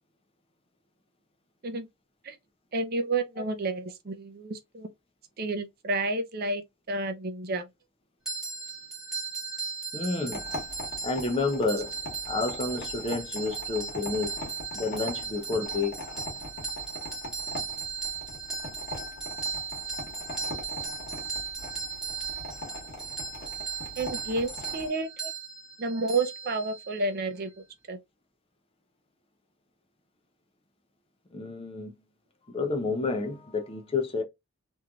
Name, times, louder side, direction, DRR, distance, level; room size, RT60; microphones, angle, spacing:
voice 1, 2.7-4.9 5.4-7.7 24.0-25.1 25.8-27.5 27.9-28.0, right 2 dB, 45° right, 0.5 m, -30 dB
sound 1, 8.3-27.0, right 5 dB, ahead, 1.2 m, -37 dB
voice 2, 9.9-10.5 11.0-12.0 12.3-14.4 14.7-16.0 31.3-31.9 32.5-34.2, left 3 dB, 25° left, 0.6 m, -30 dB
sound 2, 10.3-24.9, left 1 dB, 45° left, 1.4 m, -41 dB
3.1 x 2.6 x 2.3 m
head